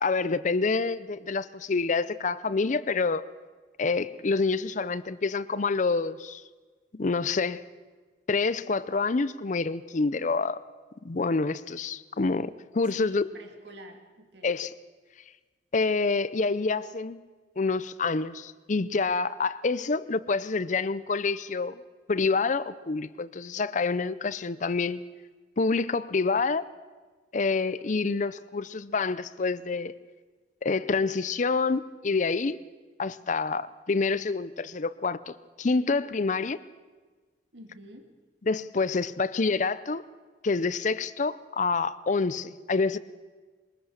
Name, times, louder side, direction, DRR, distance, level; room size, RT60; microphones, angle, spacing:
voice 1, 0.0-3.2 3.8-6.4 6.9-7.6 8.3-10.6 11.0-13.3 14.4-14.7 15.7-17.2 17.6-21.8 22.1-25.0 25.6-26.6 27.3-29.9 30.6-32.6 33.0-36.6 38.5-40.0 40.4-43.0, left 4 dB, 45° left, 16 dB, 0.6 m, -27 dB
voice 2, 12.8-14.6 37.5-38.1, right 1 dB, 75° right, 5 dB, 2.4 m, -47 dB
22.5 x 20.0 x 6.5 m, 1.4 s
head